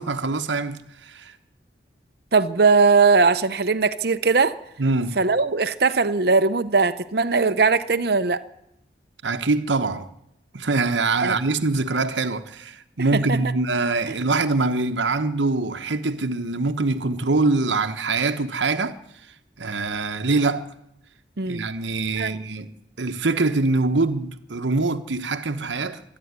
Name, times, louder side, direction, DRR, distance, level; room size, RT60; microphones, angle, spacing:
voice 1, 0.0-1.3 4.8-5.2 9.2-10.1 10.5-19.0 19.6-20.7 21.5-22.7 23.0-26.0, right 3 dB, 85° right, 1.1 m, -24 dB
voice 2, 2.3-4.6 5.2-8.4 11.2-11.4 13.1-13.4 21.4-21.7 22.1-22.4, right 4 dB, 60° right, 0.8 m, -19 dB
26.0 x 11.0 x 9.6 m
head